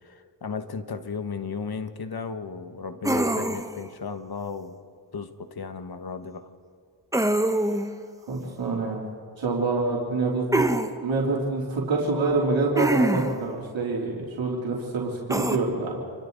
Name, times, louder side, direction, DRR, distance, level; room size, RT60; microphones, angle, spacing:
voice 1, 0.0-4.8 5.1-6.5, left 5 dB, 55° left, 9 dB, 1.5 m, -35 dB
Content warning, 3.0-3.8 7.1-7.9 10.5-10.9 12.8-13.4 15.3-15.6, right 1 dB, 5° right, 1.2 m, -24 dB
voice 2, 8.2-9.0 9.4-16.0, right 3 dB, 85° right, -3 dB, 3.5 m, -26 dB
28.0 x 23.5 x 4.1 m, 2.1 s
cardioid pair, 65°, 45 cm